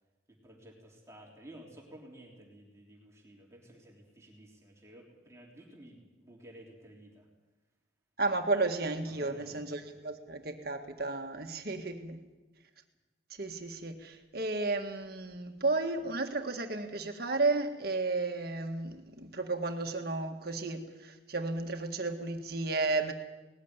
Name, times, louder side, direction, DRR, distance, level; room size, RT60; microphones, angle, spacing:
voice 1, 0.4-7.3 9.2-9.5 9.8-9.9, right 1 dB, 15° right, -2 dB, 3.5 m, -53 dB
voice 2, 8.2-12.2 13.4-23.1, right 3 dB, 50° right, 4 dB, 1.8 m, -33 dB
19.5 x 15.0 x 9.7 m, 1.2 s
head